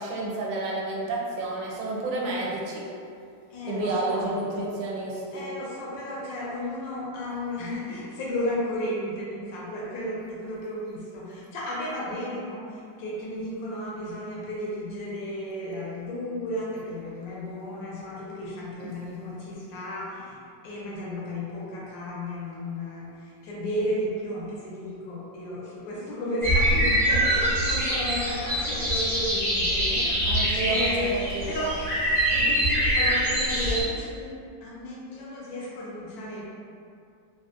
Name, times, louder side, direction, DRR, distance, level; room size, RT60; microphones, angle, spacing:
voice 1, 0.0-2.8 3.7-5.4 18.8-18.9 30.2-31.5, right 2 dB, 80° right, -3 dB, 1.3 m, -30 dB
voice 2, 3.5-4.3 5.3-23.1 23.4-30.3 30.7-31.1 31.4-31.8 32.3-34.3 34.6-36.5, left 1 dB, 75° left, -5 dB, 1.4 m, -33 dB
sound 1, 26.4-33.8, equal, ahead, 0.8 m, -24 dB
3.5 x 2.5 x 2.4 m, 2.4 s
omnidirectional pair, 2.1 m